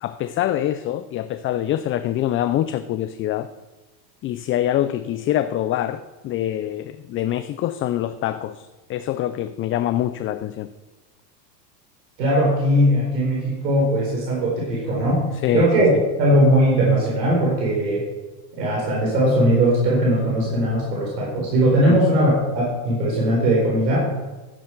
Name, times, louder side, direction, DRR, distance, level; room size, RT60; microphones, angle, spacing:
voice 1, 0.0-3.5 4.2-10.7 15.4-15.7 21.8-22.0, left 12 dB, 30° left, 11 dB, 0.4 m, -25 dB
voice 2, 12.2-15.2 15.5-15.9 16.2-18.0 18.6-24.0, right 1 dB, 85° right, -4 dB, 4.3 m, -19 dB
13.0 x 9.9 x 4.6 m, 1.2 s
supercardioid pair, 105°, 48 cm